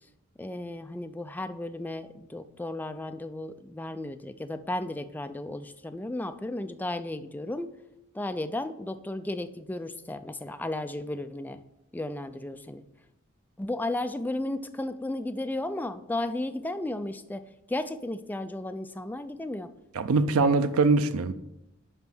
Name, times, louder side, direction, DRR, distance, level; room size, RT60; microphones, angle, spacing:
voice 1, 0.4-7.7 8.1-11.6 11.9-12.8 13.6-19.7, left 1 dB, 10° left, 0.3 m, -34 dB
voice 2, 19.9-21.3, right 3 dB, 80° right, 0.5 m, -22 dB
5.5 x 5.1 x 6.0 m
head